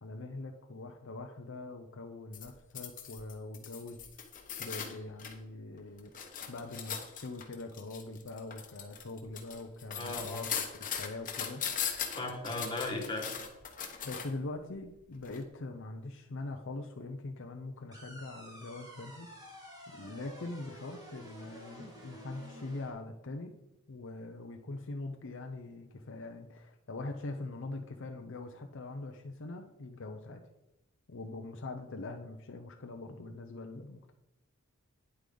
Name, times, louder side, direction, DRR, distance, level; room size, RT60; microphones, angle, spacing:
voice 1, 0.0-4.0 4.6-6.1 6.5-11.6 14.0-23.5 23.9-30.4 31.1-34.1, left 2 dB, 60° left, 4 dB, 0.7 m, -43 dB
sound 1, 2.3-5.4 5.8-14.4 15.2-15.4, left 8 dB, 40° left, 1.2 m, -39 dB
voice 2, 9.9-10.5 12.1-13.3, left 2 dB, 20° left, 2 dB, 1.8 m, -36 dB
sound 2, 17.9-22.9, equal, 20° right, 2.2 m, -50 dB
9.9 x 8.3 x 3.9 m, 0.91 s
head